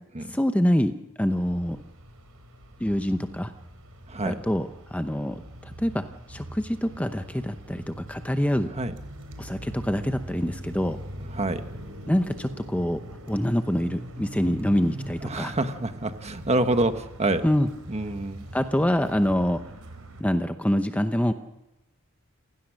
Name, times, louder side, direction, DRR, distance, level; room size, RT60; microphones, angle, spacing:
voice 1, 0.3-1.8 2.8-3.5 4.2-8.7 9.4-11.0 12.1-13.0 13.3-15.5 17.4-17.7 18.5-19.6 20.2-21.3, equal, 5° left, 8 dB, 0.7 m, -25 dB
sound 1, 1.3-20.2, right 1 dB, 85° right, 3.7 m, -42 dB
voice 2, 11.3-11.6 15.2-17.4 17.9-18.5, right 2 dB, 30° right, 8 dB, 1.4 m, -27 dB
28.5 x 16.5 x 6.4 m, 0.95 s
head